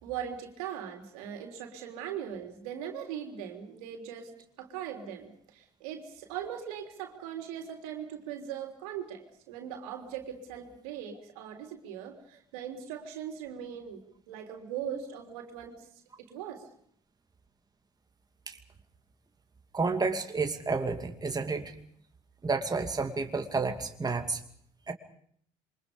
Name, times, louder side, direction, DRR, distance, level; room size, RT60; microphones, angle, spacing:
voice 1, 0.0-4.3 4.6-15.8 16.2-16.6, right 9 dB, 75° right, 4 dB, 3.7 m, -40 dB
voice 2, 19.7-21.7 22.4-24.4 24.9-25.0, right 4 dB, 20° right, 5 dB, 2.7 m, -30 dB
27.5 x 24.5 x 5.3 m, 0.64 s
hypercardioid pair, 60°, 19 cm